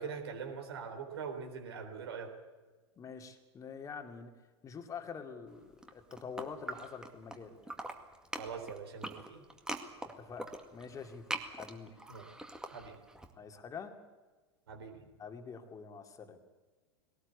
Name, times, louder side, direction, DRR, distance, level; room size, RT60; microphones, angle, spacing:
voice 1, 0.0-2.3 8.4-9.4 12.1-12.3 12.7-13.0 14.7-15.1, right 6 dB, 65° right, 3 dB, 4.0 m, -43 dB
voice 2, 3.0-4.4 4.6-7.7 10.2-12.0 13.4-13.9 15.2-16.4, left 6 dB, 25° left, 6 dB, 2.5 m, -46 dB
sound 1, 5.7-7.4 7.6-13.3, right 1 dB, 5° right, 2.1 m, -43 dB
21.0 x 18.0 x 8.4 m, 1.3 s
figure-of-eight pair, 90°, 14 cm